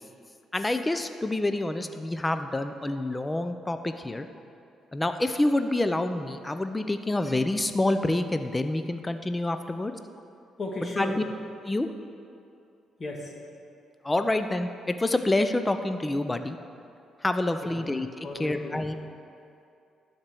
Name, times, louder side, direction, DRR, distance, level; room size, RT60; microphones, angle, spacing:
voice 1, 0.5-4.3 4.9-9.9 11.0-11.2 11.6-11.9 14.0-16.6 17.2-18.1 18.4-18.9, left 2 dB, 15° left, 8 dB, 0.5 m, -27 dB
voice 2, 10.6-11.2 13.0-13.3 17.6-17.9 18.2-18.8, left 2 dB, 40° left, -1 dB, 1.8 m, -35 dB
12.0 x 4.4 x 7.7 m, 2.5 s
cardioid pair, 90°, 0 cm